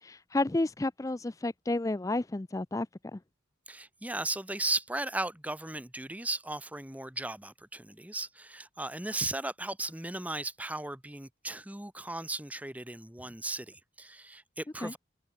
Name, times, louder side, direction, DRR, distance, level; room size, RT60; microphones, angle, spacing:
voice 1, 0.0-2.9 3.1-3.2 14.8-14.9, left 2 dB, 15° left, 0.4 m, -31 dB
voice 2, 3.7-15.0, right 2 dB, 5° right, 1.0 m, -36 dB
head